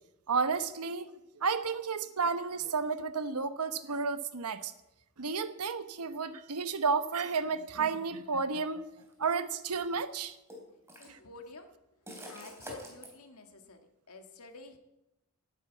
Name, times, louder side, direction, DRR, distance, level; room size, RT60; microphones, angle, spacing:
voice 1, 0.3-1.1 1.4-4.7 5.2-8.8 9.2-10.3, right 5 dB, 90° right, 11 dB, 1.0 m, -32 dB
sound 1, 9.0-9.1 10.5-11.2 12.1-13.1, equal, 10° right, 3.3 m, -46 dB
voice 2, 11.0-11.7 12.3-14.8, left 2 dB, 80° left, 5 dB, 2.0 m, -50 dB
12.0 x 9.7 x 8.4 m, 0.92 s
head